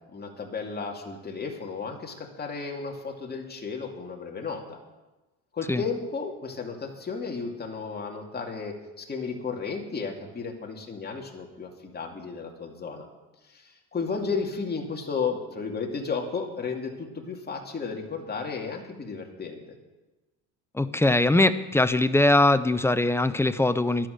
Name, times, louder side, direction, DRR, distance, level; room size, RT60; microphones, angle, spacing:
voice 1, 0.1-4.8 5.5-13.1 13.5-19.6, left 5 dB, 25° left, 1 dB, 2.4 m, -33 dB
voice 2, 20.7-24.1, left 2 dB, 5° left, 12 dB, 0.5 m, -21 dB
13.0 x 11.5 x 6.5 m, 1.1 s
cardioid pair, 120°, 38 cm